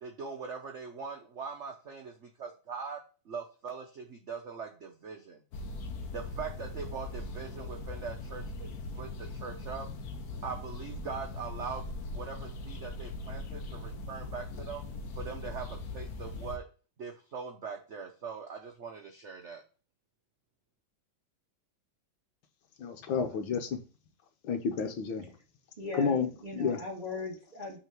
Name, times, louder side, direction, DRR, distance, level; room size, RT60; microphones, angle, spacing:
voice 1, 0.0-5.4 6.1-8.7 8.9-9.9 10.4-14.8 15.2-16.6 17.0-19.6, right 5 dB, 60° right, 0.7 m, -41 dB
sound 1, 5.5-16.6, left 2 dB, 55° left, 1.2 m, -40 dB
voice 2, 22.8-23.8 24.4-25.3 25.9-26.8, left 6 dB, 75° left, 1.7 m, -31 dB
voice 3, 25.8-27.8, left 2 dB, 20° right, 2.3 m, -39 dB
6.1 x 3.8 x 6.0 m
omnidirectional pair, 2.2 m